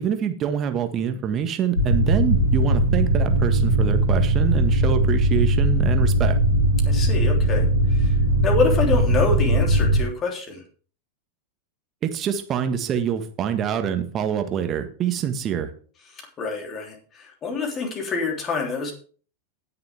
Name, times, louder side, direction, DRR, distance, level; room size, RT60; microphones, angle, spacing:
voice 1, 0.0-6.4 12.0-15.7, right 8 dB, 30° right, 7 dB, 1.6 m, -25 dB
sound 1, 1.8-10.0, right 1 dB, 75° left, 4.0 m, -19 dB
voice 2, 6.8-8.1 8.4-10.6 16.2-18.9, left 4 dB, 25° left, 2 dB, 3.3 m, -26 dB
18.5 x 6.8 x 3.6 m, 0.42 s
figure-of-eight pair, 90°, 0 cm